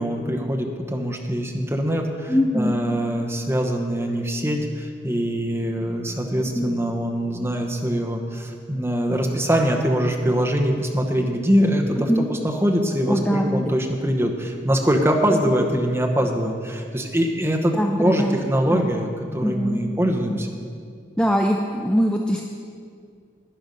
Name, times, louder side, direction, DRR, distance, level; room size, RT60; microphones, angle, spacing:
voice 1, 0.0-17.7 18.0-20.5, equal, 15° right, 2 dB, 1.0 m, -23 dB
voice 2, 2.3-2.7 6.6-6.7 12.1-12.3 13.1-13.6 15.3-15.4 17.8-18.4 18.7-18.9 19.4-19.8 20.3-20.5 21.2-22.4, equal, 5° left, 1 dB, 0.5 m, -22 dB
11.5 x 9.9 x 5.3 m, 2.2 s
head